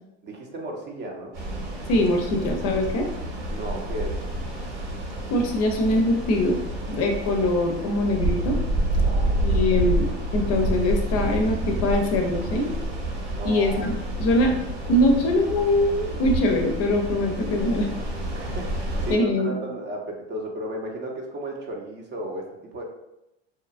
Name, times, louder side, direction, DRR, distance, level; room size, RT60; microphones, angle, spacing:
voice 1, 0.2-1.4 3.5-4.2 8.9-9.6 13.3-13.9 18.3-22.5 22.7-22.8, right 1 dB, 30° right, 0 dB, 0.6 m, -34 dB
sound 1, 1.3-19.2, right 1 dB, 80° right, 1.3 m, -28 dB
voice 2, 1.9-3.1 5.3-6.6 6.9-8.6 9.4-10.1 10.3-12.7 13.4-14.5 14.9-17.9 19.1-19.5, left 1 dB, 45° left, 3 dB, 0.5 m, -22 dB
2.8 x 2.4 x 2.4 m, 0.87 s
hypercardioid pair, 105°, 34 cm